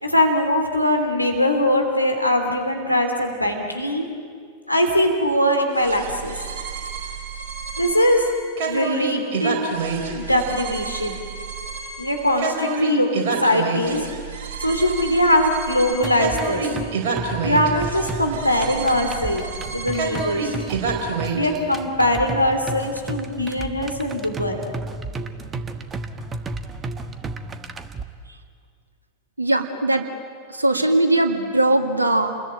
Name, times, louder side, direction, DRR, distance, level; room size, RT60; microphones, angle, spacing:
voice 1, 0.0-4.1 4.7-6.3 7.8-8.2 8.7-9.7 10.1-11.2 12.0-14.0 14.6-16.7 17.4-19.4 19.7-20.5 21.3-24.6, left 1 dB, 90° left, 3 dB, 3.1 m, -21 dB
sound 1, 5.8-21.5, right 5 dB, 50° right, 4.5 m, -29 dB
sound 2, 16.0-28.0, right 3 dB, 20° right, 1.4 m, -33 dB
voice 2, 29.4-30.1 30.5-32.4, right 2 dB, 80° right, 5 dB, 2.0 m, -20 dB
28.5 x 21.0 x 9.1 m, 2.1 s
figure-of-eight pair, 90°, 0 cm